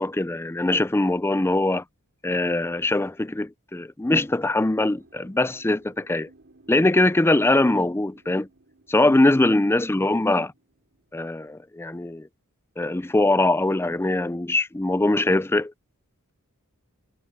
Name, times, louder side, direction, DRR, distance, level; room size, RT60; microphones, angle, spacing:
voice 1, 0.0-1.8 2.2-6.3 6.7-8.5 8.9-10.5 11.1-12.3 12.8-15.7, left 2 dB, 10° left, 0.4 m, -22 dB
sound 1, 4.0-11.6, right 2 dB, 55° right, 4.9 m, -57 dB
head